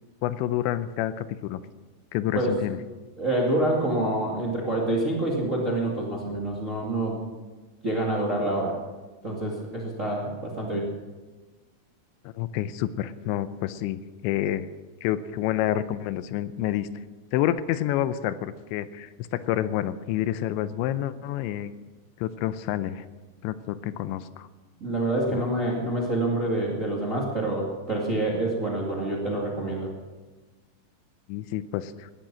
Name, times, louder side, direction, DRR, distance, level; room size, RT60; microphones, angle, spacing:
voice 1, 0.2-1.6 2.1-2.8 12.4-14.7 15.0-16.9 17.3-21.7 22.2-23.1 23.4-24.5 25.3-25.4 31.3-32.1, left 12 dB, 80° left, 13 dB, 2.8 m, -28 dB
voice 2, 3.2-7.2 7.8-8.8 9.2-10.9 24.8-29.9, right 1 dB, 35° right, -2 dB, 1.2 m, -27 dB
18.5 x 12.0 x 6.2 m, 1.3 s
omnidirectional pair, 5.5 m